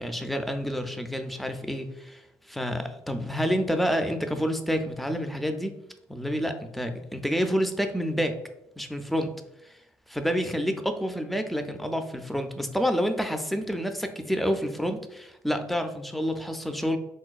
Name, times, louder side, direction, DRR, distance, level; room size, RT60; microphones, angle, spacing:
voice 1, 0.0-2.2 2.5-5.8 6.1-8.4 8.8-9.3 10.1-17.0, equal, ahead, 7 dB, 0.3 m, -28 dB
3.8 x 2.2 x 2.3 m, 0.88 s
cardioid pair, 95°, 7 cm